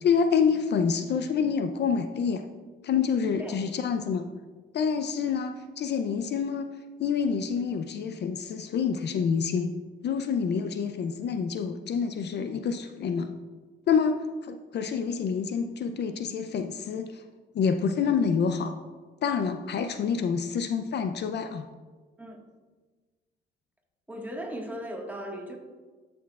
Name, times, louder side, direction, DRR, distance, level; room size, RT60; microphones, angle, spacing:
voice 1, 0.0-2.4 2.8-4.2 4.7-6.7 7.0-9.7 10.0-13.3 13.9-17.2 17.5-18.8 19.2-21.7, left 6 dB, 60° left, 8 dB, 0.5 m, -27 dB
voice 2, 24.1-25.6, equal, 10° right, 0 dB, 1.5 m, -37 dB
13.5 x 6.2 x 2.4 m, 1.4 s
cardioid pair, 90°, 20 cm